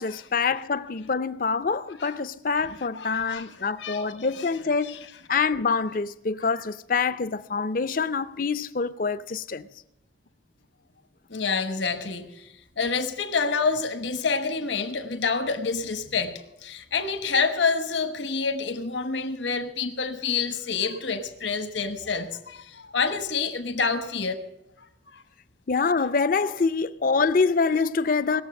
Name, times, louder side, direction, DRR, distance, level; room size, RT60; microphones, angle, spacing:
voice 1, 0.0-5.0 5.3-9.7 25.7-28.4, left 4 dB, 45° left, 0.5 m, -25 dB
voice 2, 3.0-4.0 4.3-4.5 4.8-5.0 11.3-12.3 12.8-24.4, left 5 dB, 75° left, 1.2 m, -28 dB
19.0 x 7.2 x 7.6 m
head